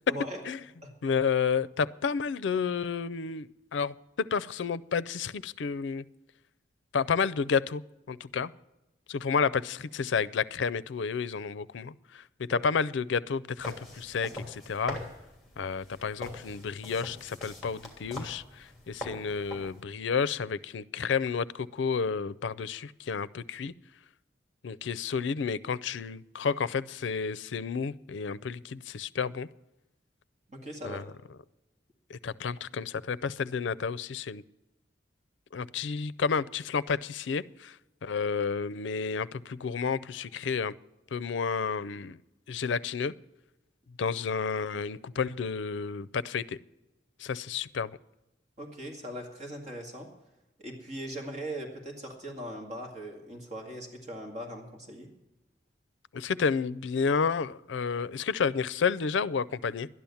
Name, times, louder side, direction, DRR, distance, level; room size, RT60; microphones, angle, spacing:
voice 1, 0.1-0.4 0.8-0.9 12.5-12.6 30.5-31.0 48.6-50.1 50.6-55.1, right 1 dB, 40° right, 1 dB, 2.1 m, -40 dB
voice 2, 1.0-6.0 6.9-7.8 8.1-8.5 9.1-15.0 15.6-23.7 24.6-29.5 30.8-31.0 32.1-34.4 35.5-40.7 41.1-42.2 42.5-43.1 44.0-46.6 47.2-48.0 56.1-59.9, left 5 dB, 85° left, 18 dB, 0.5 m, -31 dB
sound 1, 13.6-19.8, left 1 dB, ahead, 3.0 m, -43 dB
12.5 x 10.5 x 7.0 m, 0.96 s
head